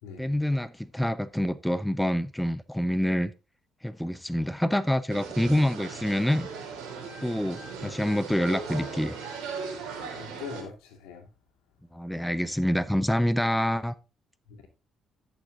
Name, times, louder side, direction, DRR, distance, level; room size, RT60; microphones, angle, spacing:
voice 1, 0.2-3.3 3.8-6.5 7.2-9.2 11.9-13.9, equal, 5° left, 0.8 m, -26 dB
sound 1, 5.1-10.6, right 5 dB, 75° right, 3.4 m, -38 dB
voice 2, 10.1-11.3, left 6 dB, 80° left, 2.4 m, -41 dB
11.0 x 7.0 x 3.8 m
hypercardioid pair, 55°, 0 cm